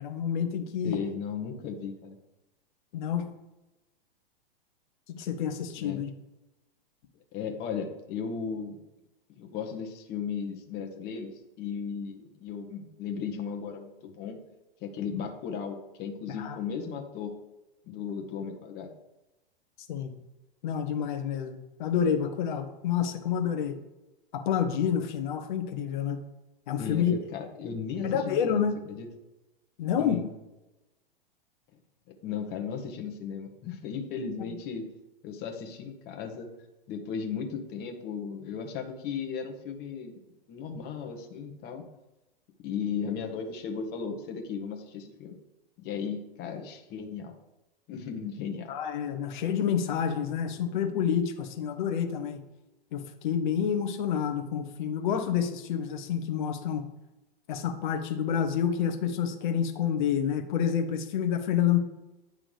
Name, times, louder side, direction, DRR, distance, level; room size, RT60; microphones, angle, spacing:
voice 1, 0.0-1.0 2.9-3.2 5.1-6.1 16.4-16.6 19.9-20.1 20.6-23.8 24.3-26.2 26.7-27.1 28.0-28.8 29.8-30.2 48.7-52.4 52.9-56.8 57.5-61.8, left 8 dB, 50° left, 7 dB, 1.2 m, -28 dB
voice 2, 0.8-2.2 5.8-6.0 7.3-8.8 9.4-11.3 11.6-14.4 14.8-17.3 17.9-18.9 26.8-29.1 30.0-30.3 32.2-34.8 35.2-36.5 36.9-40.2 40.5-41.9 42.6-45.4 45.8-47.3 47.9-48.7, left 6 dB, 35° left, 4 dB, 1.4 m, -36 dB
9.3 x 3.8 x 5.1 m, 1.0 s
hypercardioid pair, 110°, 30 cm